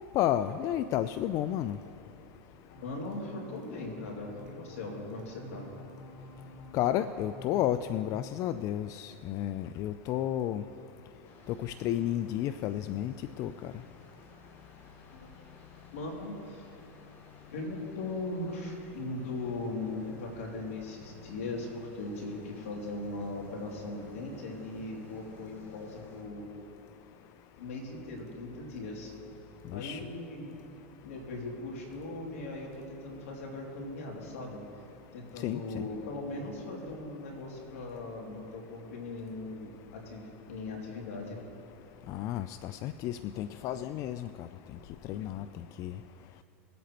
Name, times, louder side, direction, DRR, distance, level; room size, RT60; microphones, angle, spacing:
voice 1, 0.0-1.8 6.7-10.6 11.5-13.7 29.7-30.0 35.4-35.9 42.1-44.5 45.1-45.5 45.8-46.0, left 12 dB, 50° left, 11 dB, 0.4 m, -32 dB
sound 1, 2.7-8.2, left 2 dB, 65° left, 1.9 m, -50 dB
voice 2, 2.8-5.7 15.1-15.5 15.9-16.7 17.5-26.5 27.6-29.1 29.7-30.6 31.0-34.6 35.1-41.4 45.1-45.4, left 2 dB, 80° left, -1 dB, 2.7 m, -39 dB
sound 2, 11.2-26.2, left 4 dB, 30° left, 2.7 m, -55 dB
21.5 x 8.2 x 3.0 m, 2.9 s
hypercardioid pair, 105°, 7 cm